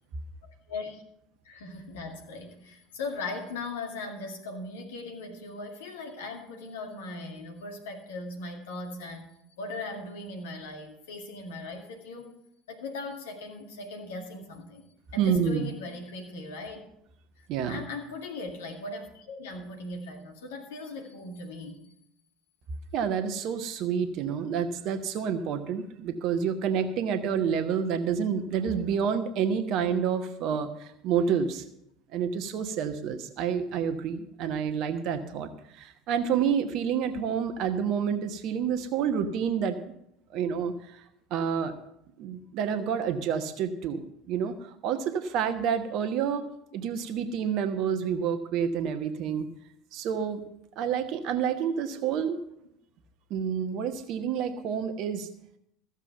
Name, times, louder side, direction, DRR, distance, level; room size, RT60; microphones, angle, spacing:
voice 1, 0.4-1.0 1.4-9.3 9.6-12.4 12.7-14.9 15.1-16.8 17.7-21.9, left 3 dB, 65° left, 3 dB, 2.1 m, -39 dB
voice 2, 15.2-15.7 17.5-17.8 22.9-31.6 32.1-39.8 40.3-41.0 41.3-41.7 42.2-46.5 46.7-49.5 49.9-50.4 50.8-52.4 53.3-55.3, right 7 dB, 50° right, 9 dB, 1.2 m, -29 dB
14.5 x 7.3 x 7.0 m, 0.77 s
figure-of-eight pair, 65°, 0 cm